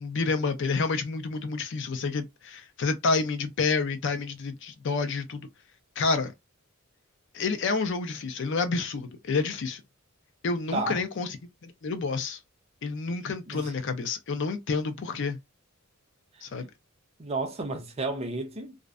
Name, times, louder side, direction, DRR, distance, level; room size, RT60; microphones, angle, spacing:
voice 1, 0.0-5.5 6.0-6.3 7.3-9.8 10.4-11.4 11.6-12.4 12.8-15.4 16.4-16.7, left 4 dB, 60° left, 0.5 m, -29 dB
voice 2, 10.7-11.0 13.5-13.7 16.3-16.4 17.2-18.8, right 3 dB, 30° right, 0.5 m, -32 dB
2.5 x 2.1 x 2.4 m
head